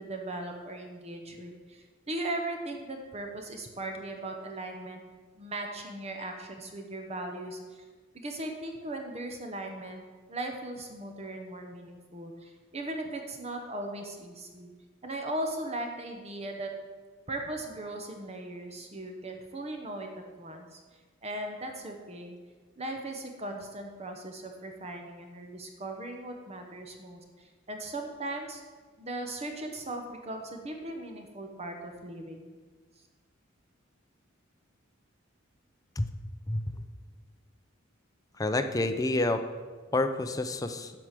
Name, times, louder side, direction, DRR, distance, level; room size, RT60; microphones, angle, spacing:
voice 1, 0.0-5.0 5.4-7.8 8.1-10.0 10.3-14.7 15.0-16.7 17.3-20.1 20.4-20.8 21.2-22.4 22.8-28.6 29.0-32.6, right 1 dB, 30° right, 3 dB, 1.0 m, -38 dB
voice 2, 36.5-36.8 38.4-39.4 39.9-40.9, left 2 dB, 15° left, 8 dB, 0.5 m, -28 dB
10.5 x 4.9 x 7.5 m, 1.4 s
head